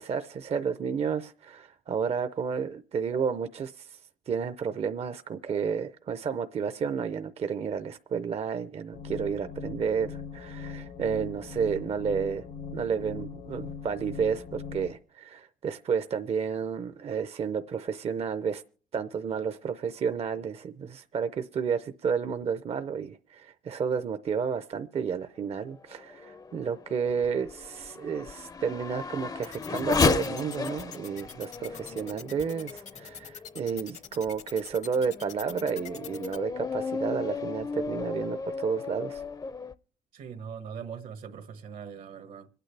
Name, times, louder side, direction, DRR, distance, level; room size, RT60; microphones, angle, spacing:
voice 1, 0.0-4.0 4.3-12.4 12.7-18.6 18.9-39.2, right 6 dB, 50° right, 0.6 m, -31 dB
sound 1, 8.9-14.9, left 6 dB, 85° left, 1.3 m, -40 dB
Race car auto racing / Accelerating revving vroom, 25.7-33.7 34.3-34.4 35.0-39.7, left 4 dB, 25° left, 0.5 m, -33 dB
sound 2, 29.4-36.4, left 7 dB, 60° left, 0.8 m, -43 dB
voice 2, 40.1-42.5, right 7 dB, 80° right, 1.5 m, -41 dB
26.0 x 9.1 x 3.3 m
cardioid pair, 95°, 14 cm